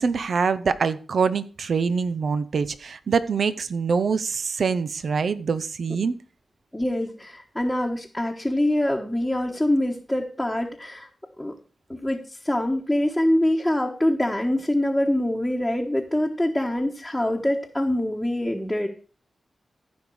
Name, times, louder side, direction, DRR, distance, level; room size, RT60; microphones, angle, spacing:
voice 1, 0.0-6.1, right 5 dB, 70° right, 0.7 m, -24 dB
voice 2, 6.7-11.1 11.4-11.5 11.9-18.9, left 1 dB, 5° left, 1.3 m, -24 dB
15.0 x 5.3 x 4.7 m
cardioid pair, 70°, 0 cm